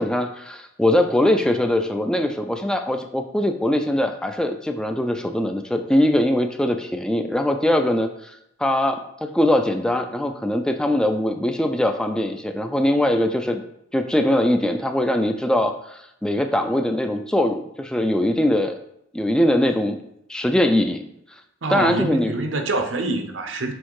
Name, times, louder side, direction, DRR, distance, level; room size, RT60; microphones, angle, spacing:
voice 1, 0.0-13.6 13.9-18.8 19.1-20.0 20.3-21.0 21.7-22.3, left 1 dB, 5° left, 0.3 m, -21 dB
voice 2, 21.6-23.7, right 2 dB, 70° right, 0.8 m, -25 dB
6.3 x 3.5 x 4.7 m
head